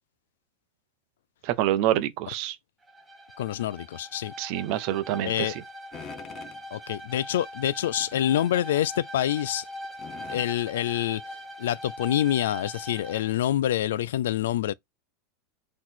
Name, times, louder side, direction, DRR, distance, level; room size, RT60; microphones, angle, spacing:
voice 1, 1.4-2.6 4.4-5.6, right 13 dB, 45° right, 0.7 m, -27 dB
Bowed string instrument, 2.8-13.3, equal, 5° right, 0.9 m, -41 dB
voice 2, 3.4-4.3 5.2-5.6 6.7-9.6 10.3-14.7, left 12 dB, 90° left, 0.3 m, -26 dB
sound 1, 5.9-6.6 7.8-8.4 8.8-8.9 10.0-10.5 11.8-11.9 12.3-12.4 13.0-13.1, left 6 dB, 25° left, 0.7 m, -44 dB
4.0 x 3.1 x 4.2 m
supercardioid pair, 165°, 0 cm